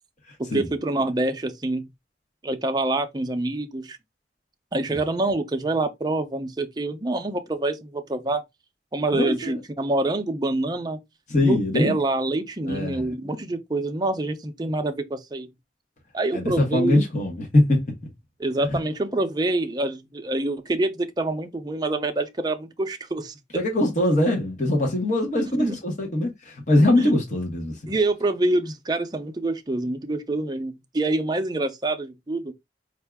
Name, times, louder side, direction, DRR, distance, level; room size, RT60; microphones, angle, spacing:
voice 1, 0.4-1.8 2.4-4.0 4.7-8.4 8.9-11.0 11.4-15.5 16.1-17.0 18.4-23.4 25.6-25.8 26.9-27.1 27.9-32.5, right 2 dB, 25° right, 0.5 m, -26 dB
voice 2, 9.2-9.6 11.3-11.9 12.6-13.0 16.3-17.8 23.5-27.9, left 1 dB, 45° left, 1.1 m, -22 dB
4.5 x 2.4 x 3.4 m
head